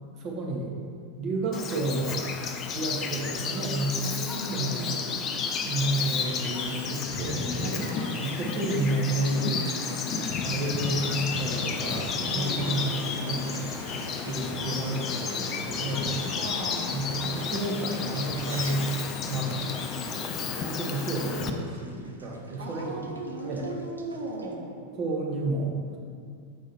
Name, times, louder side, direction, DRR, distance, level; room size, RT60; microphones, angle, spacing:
voice 1, 0.2-0.7 1.2-2.2 2.7-4.1 4.5-5.0 5.6-9.6 10.4-12.9 13.2-13.6 14.2-16.2 16.9-18.9 19.2-19.7 20.5-23.1 23.4-23.6 24.9-26.0, right 2 dB, 40° right, -1 dB, 1.1 m, -31 dB
Bird vocalization bird call bird song, 1.5-21.5, left 5 dB, 30° left, 0.5 m, -32 dB
voice 2, 4.0-5.2 7.6-8.3 12.3-13.0 16.1-17.2 22.6-24.7, right 2 dB, 65° right, -2 dB, 1.3 m, -37 dB
sound 1, 5.6-24.5, right 1 dB, 80° right, 0.6 m, -46 dB
8.5 x 4.7 x 3.0 m, 2.3 s
figure-of-eight pair, 90°, 0 cm